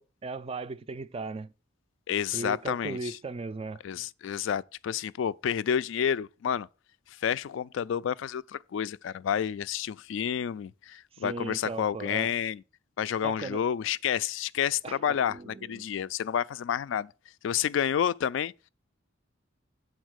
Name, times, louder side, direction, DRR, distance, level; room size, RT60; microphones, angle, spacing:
voice 1, 0.0-1.5 2.3-3.8 11.1-12.3 13.2-13.6 14.8-15.9, right 3 dB, 30° right, 0.3 m, -37 dB
voice 2, 2.1-3.2 3.8-6.7 7.2-12.6 13.0-17.1 17.4-18.5, left 8 dB, 65° left, 0.3 m, -30 dB
8.0 x 4.2 x 6.3 m
head